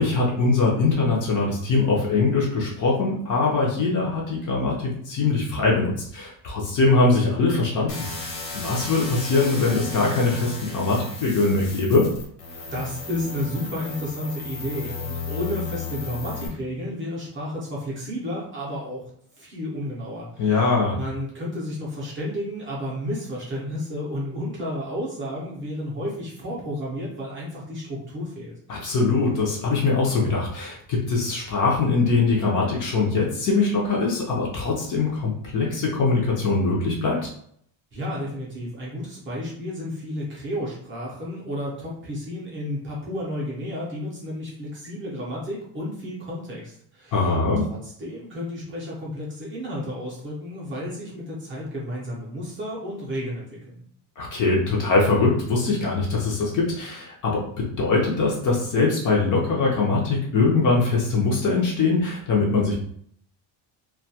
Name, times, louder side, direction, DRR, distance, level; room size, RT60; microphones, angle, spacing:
voice 1, 0.0-12.1 20.4-21.0 28.7-37.2 47.1-47.7 54.2-62.7, left 3 dB, 40° left, -3 dB, 0.5 m, -22 dB
sound 1, 7.9-16.5, left 4 dB, 65° left, 0.9 m, -34 dB
voice 2, 12.7-19.0 19.4-28.6 37.9-47.3 47.6-53.8, equal, 25° right, -5 dB, 0.5 m, -32 dB
2.2 x 2.2 x 2.7 m, 0.64 s
cardioid pair, 180°, 48 cm